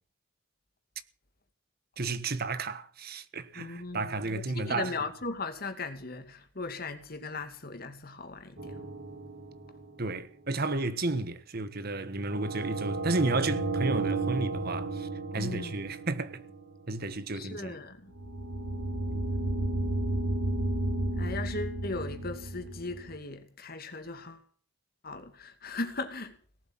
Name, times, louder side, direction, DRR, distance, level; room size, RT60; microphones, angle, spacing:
voice 1, 2.0-5.0 10.0-16.4 16.9-17.8 19.1-19.2, right 3 dB, 55° right, 1.4 m, -32 dB
voice 2, 3.6-8.9 15.3-15.7 17.3-18.1 21.2-24.4 25.0-26.4, left 3 dB, 55° left, 2.4 m, -38 dB
sound 1, 8.6-10.0 12.3-16.7 18.1-23.1, right 2 dB, 70° right, 4.2 m, -33 dB
18.0 x 8.1 x 8.9 m
head